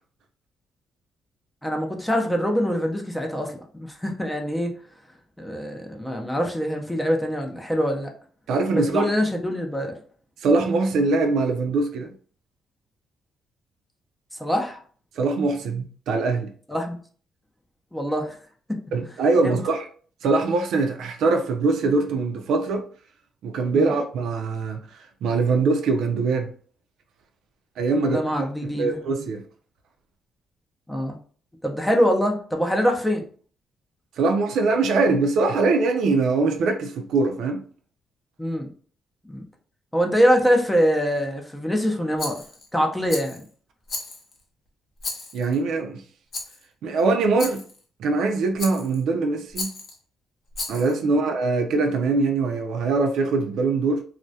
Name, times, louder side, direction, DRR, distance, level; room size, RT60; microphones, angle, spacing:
voice 1, 1.6-4.7 5.4-8.1 8.7-10.0 14.4-14.8 16.7-17.0 17.9-18.4 18.7-18.8 19.4-19.6 23.7-23.9 28.1-29.0 30.9-31.2 31.6-33.3 38.4-38.7 39.3-39.4 39.9-42.4 42.7-43.4, equal, 5° left, 0.5 m, -24 dB
voice 2, 8.5-9.1 10.4-12.1 15.2-16.5 18.9-19.9 20.2-22.8 23.4-24.8 25.2-26.5 27.8-28.2 28.8-29.4 34.2-37.6 45.3-46.0 46.8-47.6 48.0-49.7 50.7-54.0, right 3 dB, 80° right, 0.4 m, -22 dB
Rattle, 42.2-42.7 43.1-43.5 43.9-44.4 45.0-45.6 46.3-46.6 47.4-47.8 48.6-49.0 49.5-50.0 50.5-51.0, left 3 dB, 50° left, 0.6 m, -34 dB
2.2 x 2.1 x 2.7 m
cardioid pair, 90°, 0 cm